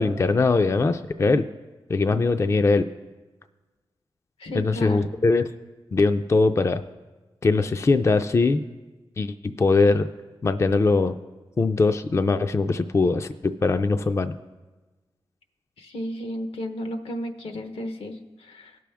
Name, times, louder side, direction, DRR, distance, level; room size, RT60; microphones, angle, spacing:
voice 1, 0.0-1.4 1.9-2.8 4.5-5.5 5.9-6.8 7.4-8.6 9.2-10.1 10.4-11.2 11.6-14.3, left 3 dB, 30° left, 9 dB, 0.4 m, -21 dB
voice 2, 4.4-5.1 15.8-18.8, left 1 dB, 85° left, 6 dB, 0.9 m, -33 dB
17.5 x 6.1 x 3.5 m, 1.2 s
wide cardioid pair, 85°, 9 cm